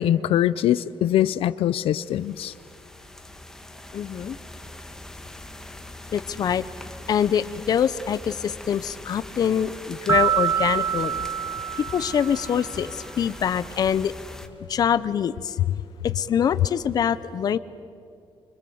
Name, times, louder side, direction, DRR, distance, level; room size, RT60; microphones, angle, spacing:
voice 1, 0.0-2.5, left 12 dB, 85° left, 16 dB, 0.5 m, -22 dB
sound 1, 2.0-14.5, left 1 dB, 5° left, 1.3 m, -42 dB
voice 2, 3.9-4.4 6.1-6.6 7.1-11.2 11.8-14.1 14.7-15.6 16.0-17.6, left 8 dB, 45° left, 15 dB, 0.7 m, -24 dB
sound 2, 10.1-12.9, right 9 dB, 25° right, 0.7 m, -26 dB
25.5 x 24.5 x 7.9 m, 2.5 s
wide cardioid pair, 180°, 9 cm